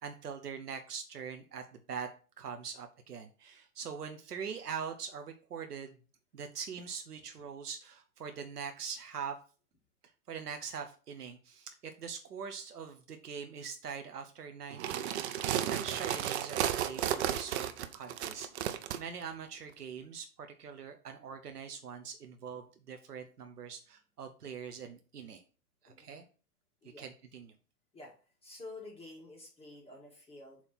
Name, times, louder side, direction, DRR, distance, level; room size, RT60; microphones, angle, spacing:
voice 1, 0.0-2.1 2.4-5.9 6.3-9.4 10.3-25.4 25.8-26.3 27.0-27.5, right 6 dB, 85° right, 5 dB, 1.0 m, -43 dB
sound 1, 14.7-19.0, right 10 dB, 45° right, 0.7 m, -33 dB
voice 2, 28.4-30.6, left 2 dB, 15° left, -3 dB, 1.9 m, -49 dB
7.2 x 3.3 x 5.7 m, 0.37 s
hypercardioid pair, 115°, 46 cm